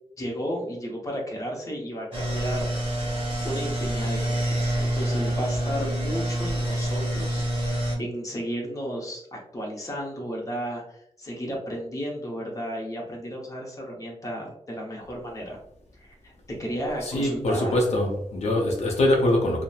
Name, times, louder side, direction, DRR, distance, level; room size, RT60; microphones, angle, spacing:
voice 1, 0.2-15.6 16.0-16.3 16.6-17.8, equal, 30° left, -1 dB, 0.7 m, -34 dB
sound 1, 2.1-8.0, right 1 dB, 50° right, 0.8 m, -27 dB
voice 2, 17.0-19.6, left 1 dB, 70° left, 0 dB, 0.5 m, -23 dB
2.8 x 2.0 x 2.3 m, 0.72 s
wide cardioid pair, 105°, 12 cm